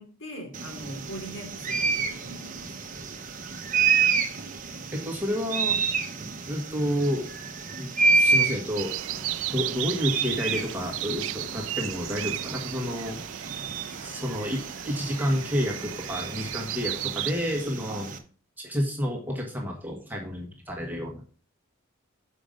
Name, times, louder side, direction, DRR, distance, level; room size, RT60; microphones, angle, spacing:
voice 1, 0.0-2.7, right 1 dB, 70° left, 0 dB, 3.1 m, -41 dB
sound 1, 0.5-18.2, right 4 dB, 40° right, 0.9 m, -29 dB
voice 2, 4.9-5.8 6.5-7.3 7.8-8.9 9.5-13.2 13.9-18.1 18.6-21.2, equal, 10° right, 0 dB, 1.4 m, -30 dB
sound 2, 8.7-17.3, right 14 dB, 65° right, 0.3 m, -35 dB
7.2 x 5.3 x 5.1 m, 0.42 s
head